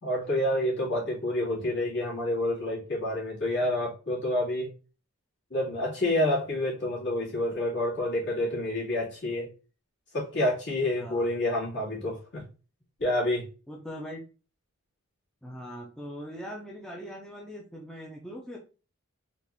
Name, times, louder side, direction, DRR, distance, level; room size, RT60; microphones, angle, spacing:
voice 1, 0.0-4.7 5.5-9.5 10.1-12.4 13.0-13.5, left 1 dB, 55° left, -5 dB, 2.0 m, -28 dB
voice 2, 11.0-11.3 13.7-14.2 15.4-18.6, equal, 5° left, -2 dB, 0.5 m, -41 dB
4.0 x 2.4 x 3.4 m, 0.34 s
head